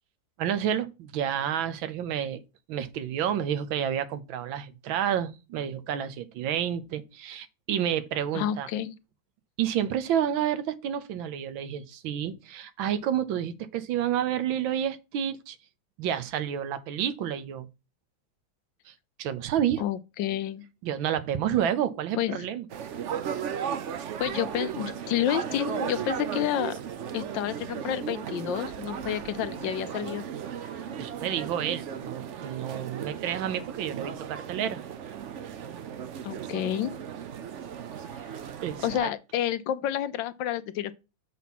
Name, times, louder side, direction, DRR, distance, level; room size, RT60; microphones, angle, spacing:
voice 1, 0.4-2.4 2.7-8.7 9.6-15.6 16.0-17.7 18.9-19.8 20.8-22.7 23.6-24.2 31.0-34.8 38.6-39.1, right 10 dB, 90° right, 1.6 m, -30 dB
voice 2, 8.3-8.9 19.8-20.6 22.2-22.5 24.2-26.7 27.1-30.3 36.2-36.9 38.8-40.9, left 11 dB, 75° left, 1.3 m, -29 dB
sound 1, 22.7-39.0, right 8 dB, 65° right, 0.7 m, -36 dB
7.2 x 4.2 x 5.9 m
omnidirectional pair, 2.1 m